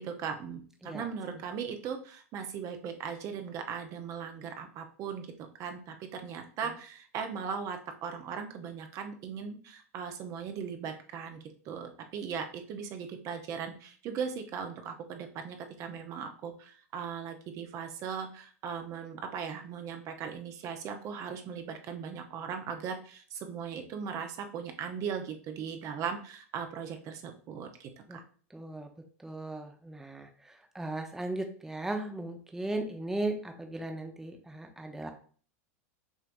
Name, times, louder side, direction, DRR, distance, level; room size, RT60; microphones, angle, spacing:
voice 1, 0.0-5.3 5.6-28.2, right 6 dB, 45° right, 5 dB, 0.8 m, -38 dB
voice 2, 28.5-28.9 29.2-35.1, right 2 dB, 5° right, 4 dB, 0.8 m, -37 dB
6.2 x 3.3 x 2.6 m, 0.43 s
hypercardioid pair, 100°, 8 cm